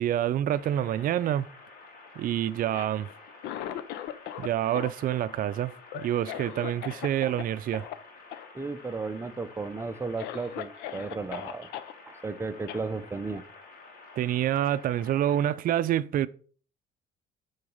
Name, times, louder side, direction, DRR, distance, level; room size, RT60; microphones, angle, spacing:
voice 1, 0.0-1.5 2.2-3.1 4.4-7.9 14.2-16.3, right 11 dB, 55° right, 0.5 m, -27 dB
sound 1, 0.5-15.5, left 3 dB, 65° left, 2.5 m, -50 dB
Cough, 2.6-4.5 4.7-7.4 7.7-8.0 8.3-8.5 8.8-9.3 9.8-9.9 10.2-11.9 12.7-12.8, left 11 dB, 85° left, 0.6 m, -39 dB
voice 2, 8.5-11.7 12.1-13.4, right 4 dB, 15° right, 0.7 m, -34 dB
8.3 x 4.0 x 5.5 m
cardioid pair, 110°, 17 cm